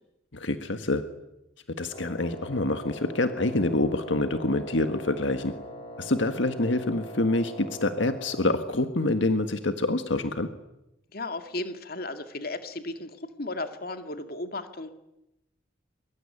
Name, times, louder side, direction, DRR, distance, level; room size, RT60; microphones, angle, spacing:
voice 1, 0.3-1.0 1.8-5.5 6.0-10.5, left 2 dB, 75° left, 8 dB, 1.6 m, -26 dB
Wind instrument woodwind instrument, 1.9-8.5, left 1 dB, 25° left, 7.5 m, -42 dB
voice 2, 11.1-14.9, left 2 dB, 50° left, 8 dB, 2.3 m, -35 dB
24.0 x 23.0 x 9.9 m, 0.89 s
head